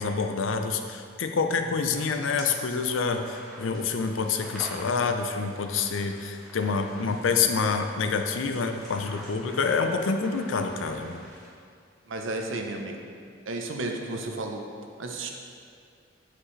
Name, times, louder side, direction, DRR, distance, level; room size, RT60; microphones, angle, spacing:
voice 1, 0.0-11.2, left 5 dB, 80° left, 6 dB, 0.5 m, -27 dB
sound 1, 2.3-11.5, equal, ahead, 1.7 m, -46 dB
voice 2, 12.1-13.1 13.5-14.6 15.0-15.3, right 2 dB, 80° right, 3 dB, 0.7 m, -33 dB
8.4 x 5.1 x 3.2 m, 2.3 s
head